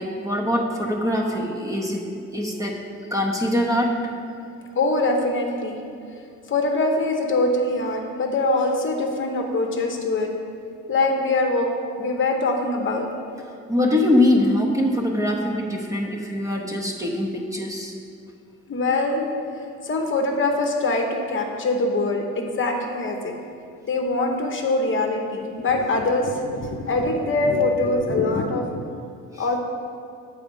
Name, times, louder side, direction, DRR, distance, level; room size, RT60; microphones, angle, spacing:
voice 1, 0.0-2.8 3.1-4.0 13.7-17.9 29.3-29.4, left 1 dB, 10° right, 0 dB, 0.8 m, -23 dB
voice 2, 4.7-5.8 6.5-10.3 10.9-11.7 12.0-13.1 18.7-19.3 19.8-23.3 23.9-28.7 29.4-29.6, left 2 dB, 40° left, 2 dB, 0.8 m, -23 dB
7.6 x 4.2 x 5.3 m, 2.4 s
cardioid pair, 90°, 30 cm